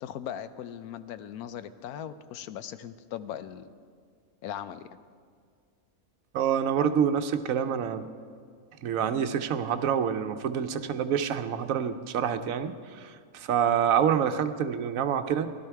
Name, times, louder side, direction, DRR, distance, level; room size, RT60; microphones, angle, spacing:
voice 1, 0.0-3.7 4.4-4.9, left 10 dB, 90° left, 12 dB, 1.1 m, -39 dB
voice 2, 6.3-8.1 8.8-15.5, right 8 dB, 70° right, 9 dB, 1.0 m, -27 dB
16.5 x 12.0 x 4.6 m, 2.1 s
omnidirectional pair, 1.5 m